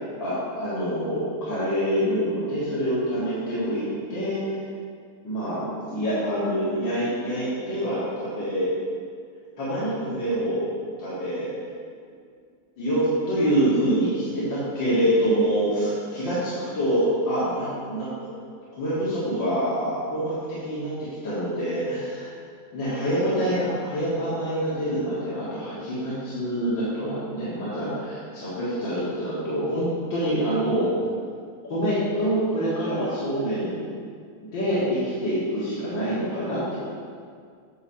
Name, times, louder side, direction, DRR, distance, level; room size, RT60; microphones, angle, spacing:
voice 1, 0.2-3.8 4.1-4.6 5.2-5.6 5.9-8.8 9.6-10.7 11.0-11.5 12.8-18.1 18.8-22.3 22.7-30.9 31.7-33.9 34.5-36.8, equal, 65° left, -11 dB, 2.7 m, -26 dB
9.7 x 4.1 x 7.1 m, 2.1 s
omnidirectional pair, 2.2 m